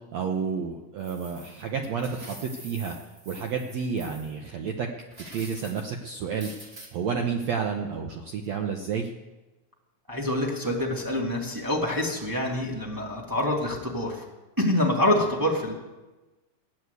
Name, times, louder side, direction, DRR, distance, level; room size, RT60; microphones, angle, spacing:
voice 1, 0.1-2.9 3.3-4.9 5.3-6.5 6.9-9.1, right 6 dB, 75° right, 3 dB, 1.6 m, -30 dB
sound 1, 1.0-4.4 5.1-5.9 6.4-6.9, right 1 dB, 35° right, 1.0 m, -46 dB
voice 2, 10.1-14.3 14.6-15.7, left 1 dB, 10° right, -3 dB, 1.2 m, -26 dB
15.5 x 9.7 x 8.2 m, 1.1 s
omnidirectional pair, 4.4 m